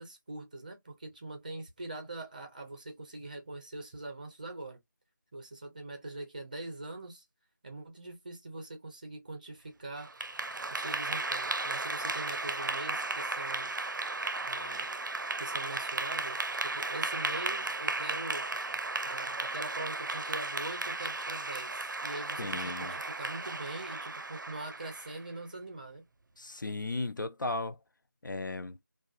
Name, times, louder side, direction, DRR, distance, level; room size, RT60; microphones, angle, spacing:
voice 1, 0.0-4.8 5.3-7.2 7.6-10.1 10.7-13.7 14.4-14.9 15.4-18.5 19.0-26.0, right 2 dB, 25° right, 0.6 m, -43 dB
Clapping / Applause, 10.0-25.2, right 3 dB, 75° right, 0.4 m, -35 dB
voice 2, 22.4-22.9 26.4-27.8 28.2-28.8, left 2 dB, 80° left, 0.5 m, -35 dB
2.3 x 2.3 x 2.3 m
figure-of-eight pair, 170°, 10 cm